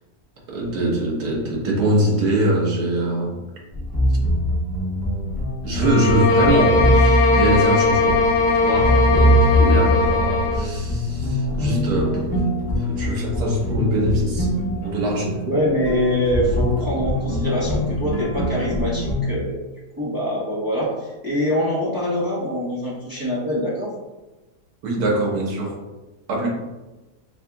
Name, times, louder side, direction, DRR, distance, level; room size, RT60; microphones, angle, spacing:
voice 1, 0.5-3.4 5.6-12.4 12.8-14.5 14.8-15.4 24.8-25.8 26.3-26.5, right 1 dB, 80° right, -2 dB, 1.5 m, -23 dB
sound 1, 3.7-19.3, equal, 5° left, 1.0 m, -23 dB
sound 2, 5.8-10.7, left 3 dB, 90° left, 1.1 m, -19 dB
voice 2, 9.5-9.8 15.5-19.6 20.0-23.9, equal, 20° right, -8 dB, 0.6 m, -24 dB
sound 3, 10.8-19.1, left 2 dB, 65° left, 0.4 m, -32 dB
5.4 x 2.8 x 2.3 m, 1.1 s
omnidirectional pair, 1.6 m